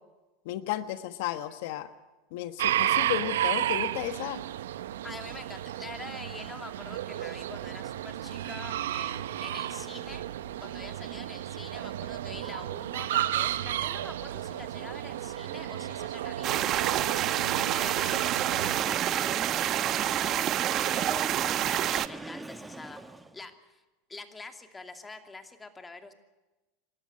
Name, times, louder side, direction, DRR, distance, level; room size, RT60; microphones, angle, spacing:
voice 1, 0.4-1.9 2.3-4.4, left 13 dB, 70° left, 10 dB, 1.3 m, -33 dB
sound 1, 2.6-18.8, right 12 dB, 90° right, 0.8 m, -32 dB
voice 2, 5.0-10.2 10.6-17.1 17.5-23.0 23.3-23.8 24.1-26.1, left 3 dB, 15° left, 6 dB, 2.6 m, -45 dB
sound 2, 16.4-22.1, right 12 dB, 40° right, 0.9 m, -28 dB
Train, 18.4-23.5, right 2 dB, 10° right, 1.2 m, -41 dB
28.0 x 12.5 x 9.6 m, 1.1 s
supercardioid pair, 125°, 0 cm